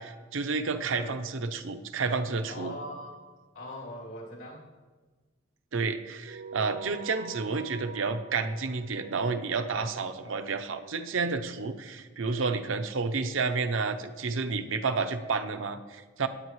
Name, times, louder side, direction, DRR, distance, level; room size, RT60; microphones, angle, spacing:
voice 1, 0.0-2.7 5.7-16.3, right 4 dB, 75° right, 8 dB, 0.7 m, -30 dB
voice 2, 0.9-1.2 2.4-3.2 3.5-4.7 10.2-10.3, equal, 80° left, -3 dB, 2.9 m, -41 dB
sound 1, 6.2-11.0, right 6 dB, 45° right, 0.4 m, -46 dB
18.5 x 8.7 x 3.1 m, 1.3 s
head